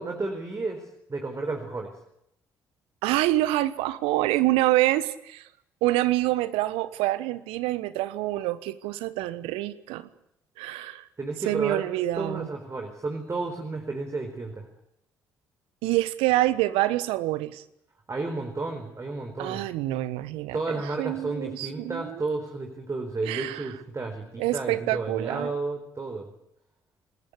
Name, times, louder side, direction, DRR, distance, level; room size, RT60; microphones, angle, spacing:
voice 1, 0.0-1.9 11.2-11.8 12.2-14.6 18.1-19.6 20.5-26.3, right 3 dB, 30° right, 4 dB, 4.5 m, -32 dB
voice 2, 3.0-5.4 5.8-10.1 10.6-11.1 11.4-12.5 15.8-17.6 19.4-20.6 20.8-22.2 23.3-23.6 24.4-25.5, right 16 dB, 70° right, 15 dB, 1.2 m, -26 dB
27.5 x 20.0 x 8.4 m, 0.79 s
figure-of-eight pair, 45°, 10 cm